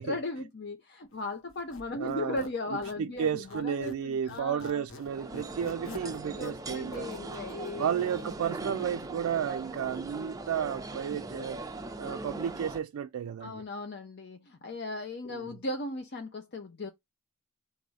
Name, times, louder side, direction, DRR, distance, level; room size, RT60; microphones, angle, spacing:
voice 1, 0.0-4.8 6.0-8.1 13.4-16.9, left 2 dB, 50° left, 0.7 m, -37 dB
Squeak, 1.5-4.0 4.3-8.4, left 3 dB, 65° left, 1.0 m, -48 dB
voice 2, 2.0-7.1 7.8-11.6 12.0-13.6 15.3-15.4, right 8 dB, 75° right, 0.3 m, -33 dB
sound 1, 5.0-12.8, right 2 dB, 15° right, 0.5 m, -40 dB
4.8 x 2.6 x 4.0 m
head